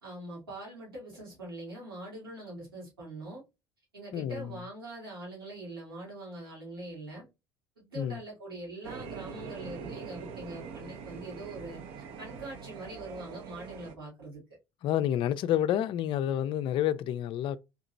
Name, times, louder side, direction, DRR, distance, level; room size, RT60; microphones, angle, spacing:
voice 1, 0.0-3.4 3.9-7.3 7.8-11.8 12.2-14.4, right 2 dB, 85° right, 2.0 m, -43 dB
voice 2, 4.1-4.6 8.0-8.2 14.8-17.6, left 11 dB, 45° left, 0.4 m, -29 dB
sound 1, 8.8-13.9, right 5 dB, 55° right, 0.6 m, -43 dB
3.6 x 2.8 x 2.5 m
figure-of-eight pair, 60°, 12 cm